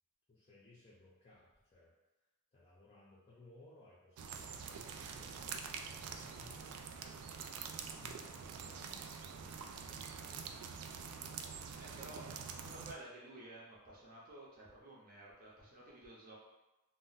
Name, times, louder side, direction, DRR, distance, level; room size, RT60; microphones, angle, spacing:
voice 1, 0.3-1.9 2.5-6.9 7.7-10.8, left 2 dB, 25° left, -6 dB, 0.5 m, -62 dB
sound 1, 4.2-12.9, right 6 dB, 80° right, 0.3 m, -46 dB
voice 2, 11.7-16.4, right 1 dB, 40° right, -5 dB, 0.7 m, -53 dB
2.4 x 2.1 x 3.9 m, 1.0 s
head